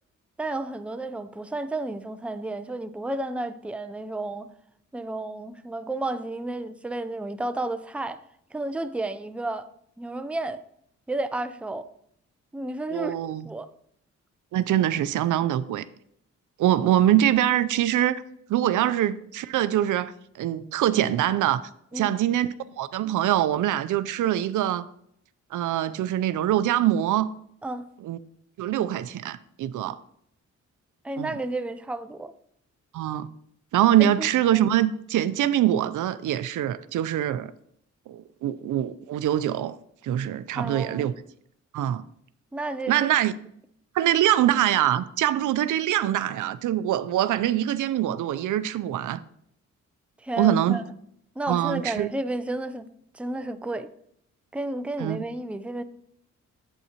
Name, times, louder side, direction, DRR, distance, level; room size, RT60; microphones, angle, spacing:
voice 1, 0.4-4.5 4.9-8.2 8.5-9.7 10.0-10.6 11.1-11.9 12.5-13.7 21.9-22.1 27.6-27.9 31.0-32.3 34.0-34.3 40.6-41.1 42.5-43.1 50.2-50.8 51.4-53.9 54.5-55.8, right 2 dB, 5° right, 0.4 m, -32 dB
voice 2, 12.9-13.5 14.5-15.8 16.6-18.2 18.5-20.1 20.4-21.6 21.9-24.9 25.5-27.3 28.0-28.2 28.6-30.0 31.2-31.3 32.9-33.3 33.7-37.5 38.1-39.8 40.0-41.1 41.7-42.0 42.9-43.3 43.9-49.2 50.4-50.8 51.5-52.1 55.0-55.2, right 12 dB, 90° right, 0.5 m, -24 dB
8.2 x 7.9 x 2.9 m
cardioid pair, 85°, 30 cm